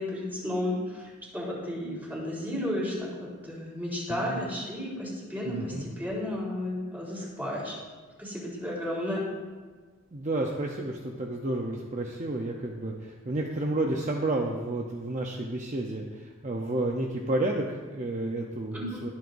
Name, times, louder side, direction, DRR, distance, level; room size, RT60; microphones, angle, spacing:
voice 1, 0.0-7.8 8.2-9.2 18.7-19.0, left 1 dB, 10° right, -5 dB, 3.9 m, -33 dB
voice 2, 5.4-5.9 10.1-19.1, right 2 dB, 40° right, 0 dB, 0.8 m, -31 dB
22.0 x 7.9 x 2.7 m, 1.4 s
head